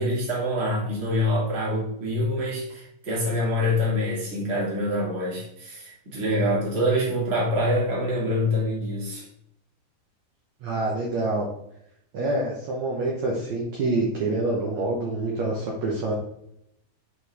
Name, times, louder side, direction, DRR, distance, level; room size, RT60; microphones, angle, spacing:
voice 1, 0.0-9.3, left 1 dB, 25° right, -5 dB, 1.6 m, -25 dB
voice 2, 10.6-11.5 12.1-16.1, right 2 dB, 75° right, -3 dB, 1.6 m, -26 dB
8.1 x 4.0 x 3.4 m, 0.76 s
omnidirectional pair, 4.8 m